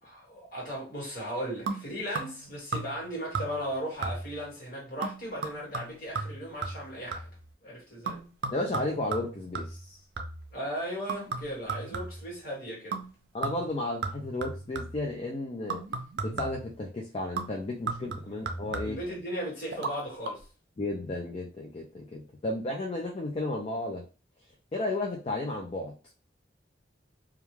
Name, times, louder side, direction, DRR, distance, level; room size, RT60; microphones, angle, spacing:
voice 1, 0.0-7.3 7.6-8.2 10.5-13.0 18.8-20.5, equal, 50° left, 1.4 m, -37 dB
sound 1, 1.7-2.5 2.7-3.1 3.3-3.7 4.0-4.5 5.0-7.4 8.1-10.5 11.1-12.4 12.9-13.2 13.4-15.1 15.7-16.7 17.4-19.1 19.7-19.9 20.2-20.3, right 4 dB, 65° right, 0.4 m, -36 dB
voice 2, 8.5-10.0 13.3-15.8 16.2-19.0 20.8-24.0 24.7-25.9, left 2 dB, 30° left, 0.4 m, -33 dB
2.4 x 2.2 x 3.1 m
head